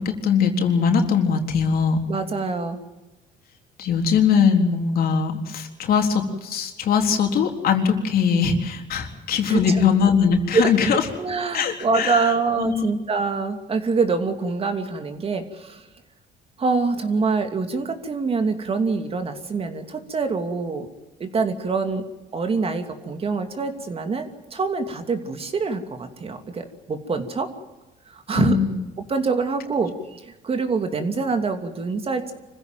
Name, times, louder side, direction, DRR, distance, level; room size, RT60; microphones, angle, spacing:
voice 1, 0.0-2.0 3.8-11.0 11.5-12.9 28.3-28.8, left 6 dB, 60° left, 4 dB, 3.8 m, -21 dB
voice 2, 2.1-2.8 9.5-9.8 10.5-15.9 16.6-20.9 21.2-22.0 22.3-27.5 28.1-28.6 29.1-32.3, right 4 dB, 35° right, 7 dB, 2.8 m, -25 dB
25.5 x 16.0 x 9.2 m, 1.1 s
cardioid pair, 110°, 17 cm